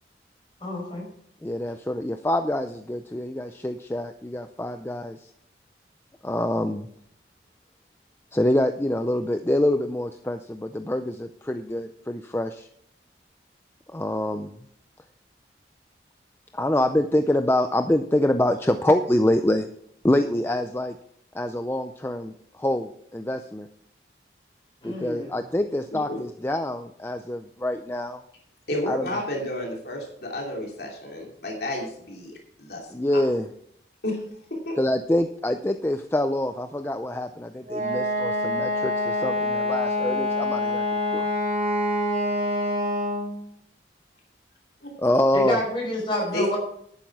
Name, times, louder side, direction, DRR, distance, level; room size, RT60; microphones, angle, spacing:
voice 1, 0.6-1.1 24.8-25.4 45.3-46.6, left 1 dB, 30° left, -2 dB, 5.7 m, -28 dB
voice 2, 1.4-5.3 6.2-6.9 8.3-12.7 13.9-14.5 16.5-19.7 20.0-21.0 21.3-23.7 24.8-28.2 28.9-29.1 32.9-33.5 34.8-40.9 41.1-41.3 45.0-45.6, left 1 dB, 15° left, 7 dB, 0.4 m, -25 dB
voice 3, 28.7-33.2 34.0-34.2 34.5-34.8 44.8-44.9 46.3-46.5, left 1 dB, 60° left, -1 dB, 2.8 m, -31 dB
Wind instrument woodwind instrument, 37.7-43.4, left 1 dB, 40° right, 4.1 m, -26 dB
11.5 x 9.2 x 4.8 m, 0.68 s
head